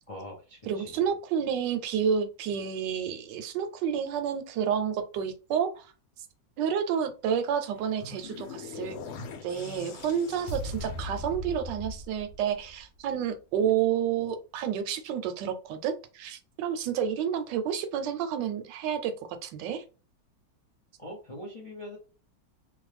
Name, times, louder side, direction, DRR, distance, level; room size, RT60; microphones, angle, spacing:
voice 1, 0.1-1.0 21.0-22.0, left 1 dB, 60° left, -1 dB, 0.3 m, -42 dB
voice 2, 0.7-5.8 6.6-9.0 9.4-19.1 19.4-19.8, right 8 dB, 80° right, 9 dB, 1.2 m, -30 dB
sound 1, 7.6-13.0, left 2 dB, 80° left, 1.3 m, -40 dB
3.0 x 2.2 x 3.2 m, 0.33 s
omnidirectional pair, 1.9 m